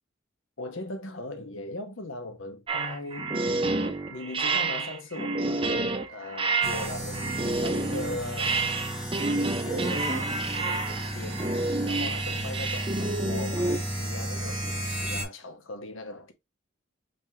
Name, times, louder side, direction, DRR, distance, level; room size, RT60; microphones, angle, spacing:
voice 1, 0.6-3.5 4.1-8.7 9.2-16.3, left 2 dB, 85° left, 1.0 m, -39 dB
sound 1, 2.7-13.8, right 3 dB, 25° right, 0.7 m, -29 dB
sound 2, 6.6-15.2, right 1 dB, 5° right, 1.5 m, -34 dB
5.2 x 3.6 x 2.8 m
head